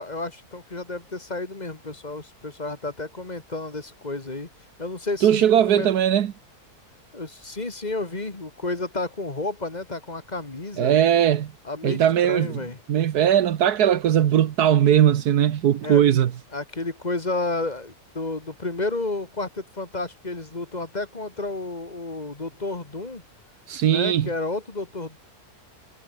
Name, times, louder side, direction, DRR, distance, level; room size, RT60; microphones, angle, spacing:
voice 1, 0.0-4.5 4.8-5.9 7.1-10.9 11.6-12.8 15.8-16.0 16.5-23.2 23.8-25.2, left 2 dB, 25° left, 2.3 m, -31 dB
voice 2, 5.2-6.3 10.8-11.5 11.8-12.6 12.9-16.3 23.7-24.3, right 10 dB, 80° right, 1.5 m, -19 dB
omnidirectional pair, 1.7 m